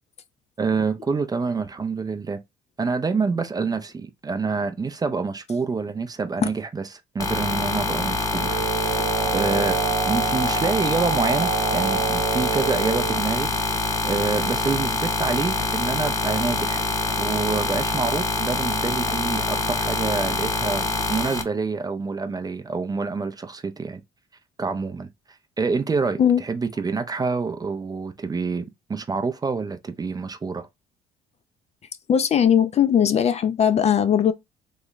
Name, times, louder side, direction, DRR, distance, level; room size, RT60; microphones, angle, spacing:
voice 1, 0.6-2.4 2.8-6.8 7.1-9.8 10.1-16.9 17.2-20.8 21.1-24.0 24.6-25.1 25.6-30.7, right 4 dB, 20° right, 0.4 m, -27 dB
sound 1, 7.2-21.4, left 3 dB, 20° left, 0.8 m, -25 dB
sound 2, 8.3-13.3, right 8 dB, 70° right, 0.7 m, -28 dB
voice 2, 32.1-34.3, left 8 dB, 40° left, 0.4 m, -19 dB
3.1 x 2.1 x 3.8 m
supercardioid pair, 85°, 17 cm